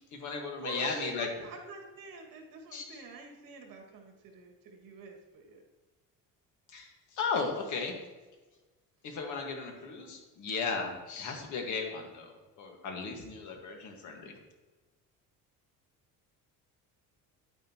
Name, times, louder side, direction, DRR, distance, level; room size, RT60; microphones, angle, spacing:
voice 1, 0.0-1.3 2.7-3.0 6.7-8.0 9.0-14.4, left 4 dB, 55° left, 2 dB, 1.8 m, -36 dB
voice 2, 0.6-5.6 9.8-9.9, right 4 dB, 70° right, 2 dB, 2.1 m, -46 dB
10.0 x 9.2 x 3.0 m, 1.2 s
cardioid pair, 170°, 35 cm